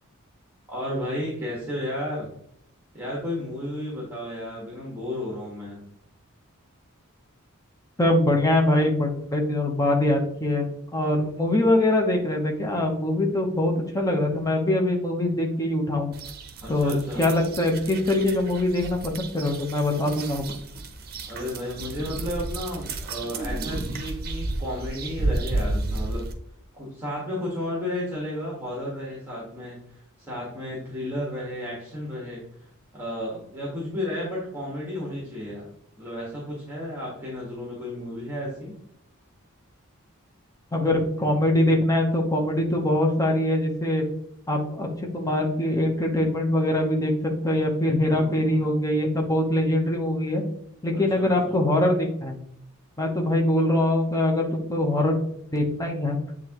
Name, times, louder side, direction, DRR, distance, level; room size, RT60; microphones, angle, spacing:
voice 1, 0.7-2.3 2.9-5.8 16.6-17.2 21.2-26.2 26.7-35.7 36.0-38.7 48.0-48.7 50.9-51.6, left 1 dB, 10° right, -4 dB, 1.5 m, -33 dB
voice 2, 8.0-16.1 16.7-20.5 40.7-44.0 44.5-44.9 45.1-47.1 47.4-50.4 50.8-52.4 53.0-55.2 55.5-56.2, left 1 dB, 15° left, 1 dB, 0.9 m, -23 dB
sound 1, 16.1-26.3, right 2 dB, 45° right, 0.8 m, -32 dB
8.7 x 3.7 x 3.0 m, 0.71 s
head